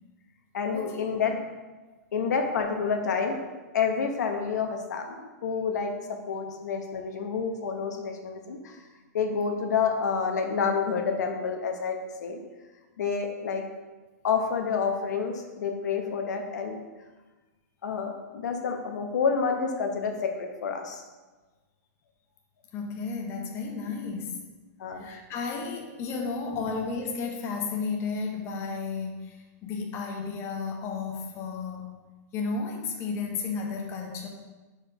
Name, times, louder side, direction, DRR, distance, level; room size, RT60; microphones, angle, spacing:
voice 1, 0.5-1.4 2.1-3.4 3.7-8.8 9.1-12.4 13.0-13.6 14.2-16.8 17.8-21.0 24.8-25.1, left 5 dB, 75° left, 3 dB, 1.0 m, -29 dB
voice 2, 22.7-24.4 24.9-32.0 32.3-34.3, left 4 dB, 25° left, 1 dB, 0.9 m, -33 dB
4.9 x 4.5 x 4.9 m, 1.2 s
hypercardioid pair, 145°, 9 cm